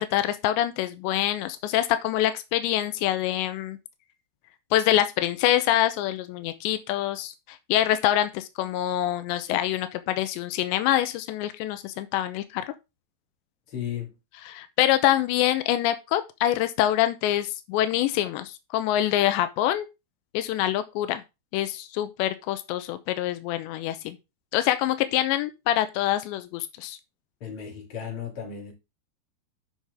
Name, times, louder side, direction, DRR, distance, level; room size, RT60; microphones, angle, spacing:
voice 1, 0.0-3.8 4.7-12.6 14.5-19.9 20.3-21.2 21.5-24.2 24.5-27.0, left 13 dB, 90° left, 3.0 m, -25 dB
voice 2, 13.7-14.1 27.4-28.7, left 8 dB, 35° left, 3.4 m, -34 dB
11.0 x 5.7 x 3.6 m
omnidirectional pair, 5.0 m